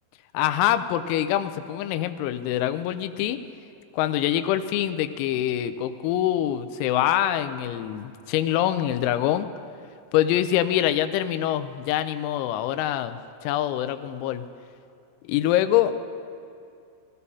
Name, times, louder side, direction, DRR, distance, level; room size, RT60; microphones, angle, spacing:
voice 1, 0.3-3.4 3.9-9.5 10.1-14.4 15.2-15.9, left 12 dB, 90° left, 10 dB, 3.4 m, -25 dB
20.5 x 14.5 x 2.8 m, 2.5 s
omnidirectional pair, 6.0 m